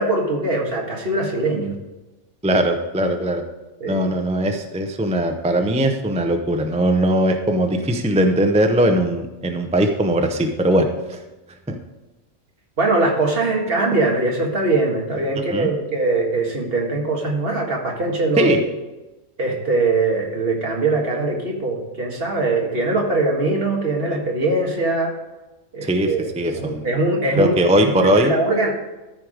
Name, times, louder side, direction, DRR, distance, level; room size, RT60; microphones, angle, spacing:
voice 1, 0.0-1.8 3.8-4.0 12.8-18.5 19.4-25.1 25.7-26.3 26.5-28.7, right 2 dB, 45° right, -1 dB, 1.9 m, -22 dB
voice 2, 2.4-3.4 3.9-11.2 11.7-11.8 15.5-15.7 18.4-18.6 25.8-26.9 27.3-28.3, right 1 dB, 10° right, 5 dB, 0.3 m, -20 dB
13.5 x 4.7 x 5.0 m, 1.1 s
omnidirectional pair, 1.4 m